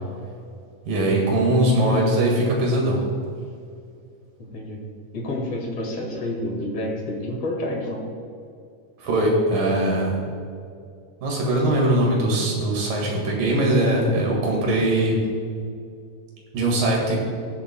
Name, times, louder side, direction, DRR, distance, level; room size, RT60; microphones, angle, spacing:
voice 1, 0.9-3.1 9.0-10.2 11.2-15.3 16.5-17.2, right 1 dB, 75° right, -2 dB, 3.5 m, -21 dB
voice 2, 4.4-4.8 5.1-8.0, left 1 dB, 50° left, -1 dB, 2.6 m, -29 dB
20.0 x 7.3 x 2.3 m, 2.3 s
omnidirectional pair, 3.9 m